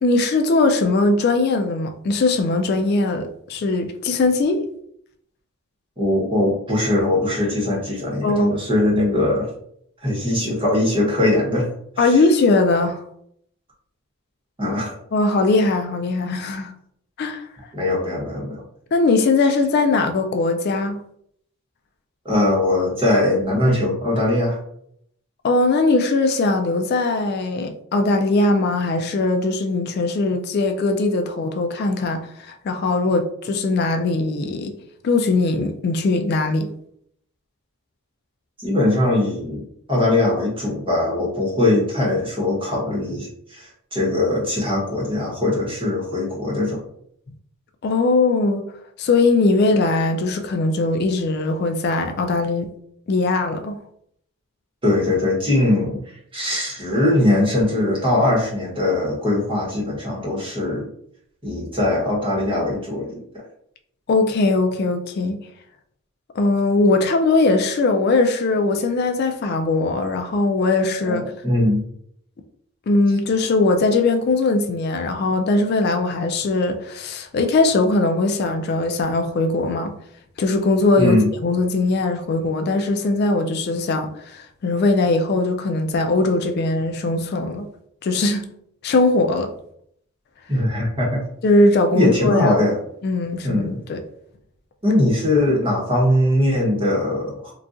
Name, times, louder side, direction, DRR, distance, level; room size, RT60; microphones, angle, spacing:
voice 1, 0.0-4.6 8.2-8.6 12.0-13.0 15.1-16.7 17.2-17.5 18.9-21.0 25.4-34.7 35.0-36.7 47.8-48.7 49.0-52.7 53.1-53.8 64.1-65.4 66.4-71.2 72.9-79.9 80.4-81.2 81.4-87.7 88.0-88.4 88.8-89.5 91.4-92.6 93.0-94.0, left 3 dB, 50° left, 0.3 m, -20 dB
voice 2, 6.0-9.5 10.0-11.7 12.0-12.1 14.6-15.0 17.7-18.6 22.2-24.6 38.6-39.6 39.9-46.8 54.8-56.0 56.3-60.9 61.4-63.2 71.1-71.8 81.0-81.3 90.5-91.2 91.9-92.7 93.4-93.8 94.8-97.5, left 1 dB, 25° right, 1.0 m, -21 dB
3.9 x 2.3 x 2.4 m
head